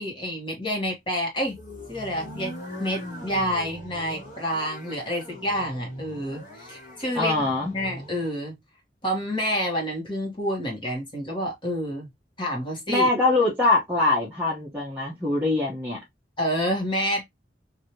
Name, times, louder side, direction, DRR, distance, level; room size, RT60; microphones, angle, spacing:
voice 1, 0.0-1.6 1.9-2.5 2.8-8.6 9.0-12.1 12.4-13.1 16.4-17.2, equal, 30° left, 1.4 m, -28 dB
sound 1, 1.5-8.3, left 1 dB, 50° left, 1.6 m, -40 dB
voice 2, 7.2-7.7 12.9-16.0, left 2 dB, 10° right, 0.9 m, -23 dB
3.1 x 2.7 x 2.7 m
head